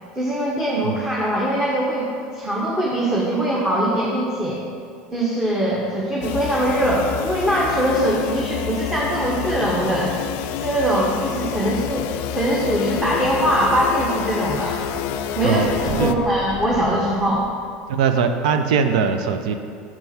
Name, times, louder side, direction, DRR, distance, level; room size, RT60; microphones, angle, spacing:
voice 1, 0.1-2.1 2.3-4.6 5.1-10.2 10.5-14.8 15.4-15.6 16.0-17.5, right 1 dB, 15° right, -5 dB, 1.1 m, -22 dB
sound 1, 6.2-16.1, left 11 dB, 65° left, 0.3 m, -28 dB
sound 2, 13.0-17.9, right 1 dB, 35° right, 1.7 m, -35 dB
voice 2, 17.9-19.5, right 6 dB, 80° right, 8 dB, 0.5 m, -20 dB
5.9 x 4.5 x 5.6 m, 2.3 s
supercardioid pair, 105°, 4 cm